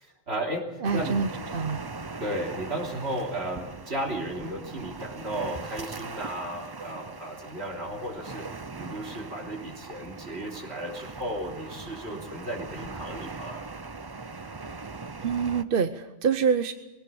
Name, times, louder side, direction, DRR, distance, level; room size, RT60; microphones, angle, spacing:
voice 1, 0.0-1.2 2.2-8.5 8.8-13.7, right 1 dB, 75° right, 1 dB, 3.5 m, -34 dB
sound 1, 0.8-15.6, right 3 dB, 25° right, 0.7 m, -40 dB
voice 2, 0.8-1.8 15.2-16.7, right 6 dB, 60° right, 10 dB, 1.0 m, -26 dB
22.0 x 17.5 x 7.0 m, 1.1 s
omnidirectional pair, 1.1 m